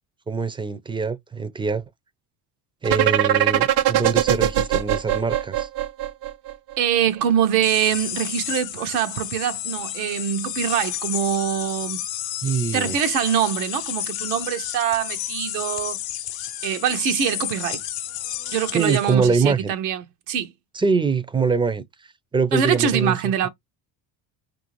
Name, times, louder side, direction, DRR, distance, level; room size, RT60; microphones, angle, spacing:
voice 1, 0.3-1.8 2.8-5.7 12.4-13.0 18.7-19.7 20.7-21.8 22.3-23.2, right 5 dB, 10° right, 0.4 m, -23 dB
sound 1, 2.8-6.7, right 12 dB, 55° right, 0.6 m, -21 dB
voice 2, 6.8-12.0 12.7-16.0 16.6-17.8 18.5-20.5 22.5-23.5, right 9 dB, 90° right, 0.8 m, -24 dB
sound 2, 7.6-19.2, left 12 dB, 50° left, 0.6 m, -31 dB
4.8 x 2.6 x 3.0 m
supercardioid pair, 75°, 47 cm